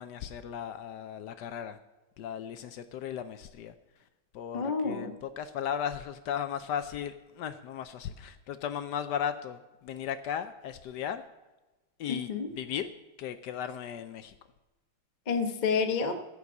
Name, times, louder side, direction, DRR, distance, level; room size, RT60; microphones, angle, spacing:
voice 1, 0.0-1.8 2.2-3.7 4.3-11.2 12.0-12.9 13.2-14.3, left 8 dB, 75° left, 10 dB, 1.0 m, -36 dB
voice 2, 4.5-5.2 12.1-12.5 15.3-16.1, left 5 dB, 50° left, 6 dB, 0.5 m, -29 dB
14.5 x 5.4 x 7.1 m, 1.1 s
omnidirectional pair, 2.4 m